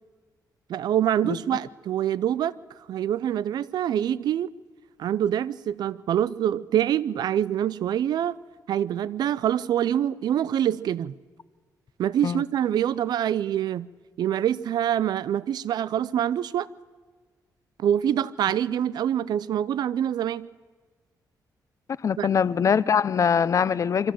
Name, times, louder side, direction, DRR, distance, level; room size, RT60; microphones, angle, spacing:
voice 1, 0.7-2.5 2.9-4.5 5.0-8.4 8.7-11.1 12.0-13.9 14.2-16.7 17.8-20.5 22.2-22.3, right 10 dB, 75° right, 0.6 m, -25 dB
voice 2, 1.2-1.6 12.2-12.4 22.0-24.1, left 7 dB, 50° left, 0.6 m, -23 dB
24.0 x 14.0 x 7.7 m
cardioid pair, 85°, 7 cm